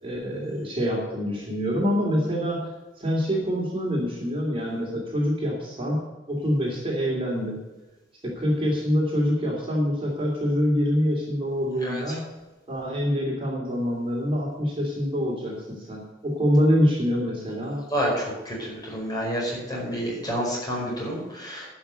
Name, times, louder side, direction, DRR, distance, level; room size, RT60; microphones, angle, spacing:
voice 1, 0.0-6.0 6.3-7.6 8.2-12.3 12.7-17.8, equal, 30° right, -3 dB, 2.7 m, -25 dB
voice 2, 17.9-21.7, equal, 20° left, -4 dB, 5.0 m, -29 dB
11.5 x 6.2 x 8.0 m, 1.1 s
head